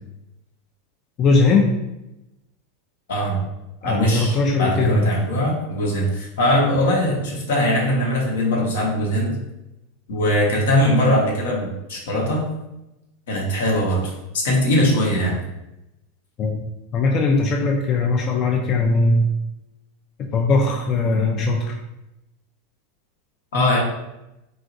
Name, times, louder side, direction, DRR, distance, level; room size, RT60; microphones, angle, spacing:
voice 1, 1.2-1.7 3.8-5.1 16.4-16.6 16.9-19.3 20.3-21.7, left 3 dB, 40° left, 0 dB, 0.3 m, -19 dB
voice 2, 3.1-3.4 3.8-9.4 10.1-12.4 13.3-15.4 23.5-23.8, equal, 75° left, -1 dB, 0.8 m, -21 dB
3.0 x 2.4 x 2.5 m, 0.92 s
hypercardioid pair, 105°, 0 cm